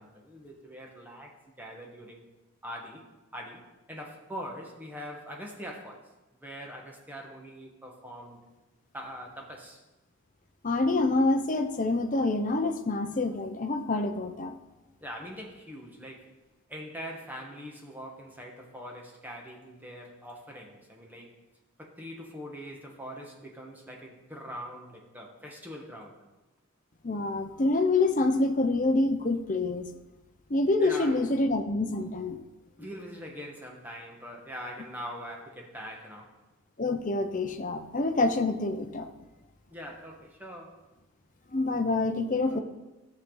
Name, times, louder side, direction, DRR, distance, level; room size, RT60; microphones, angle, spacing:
voice 1, 0.0-2.2 2.6-6.0 6.3-8.4 8.9-9.8 15.0-16.3 16.7-21.4 21.8-26.3 30.8-31.2 32.8-36.3 39.7-40.8 42.5-42.6, equal, 10° right, 0 dB, 1.3 m, -43 dB
voice 2, 10.6-14.5 27.0-29.9 30.5-32.4 36.8-39.1 41.5-42.6, left 2 dB, 35° left, 6 dB, 0.7 m, -26 dB
14.0 x 6.8 x 3.9 m, 1.1 s
head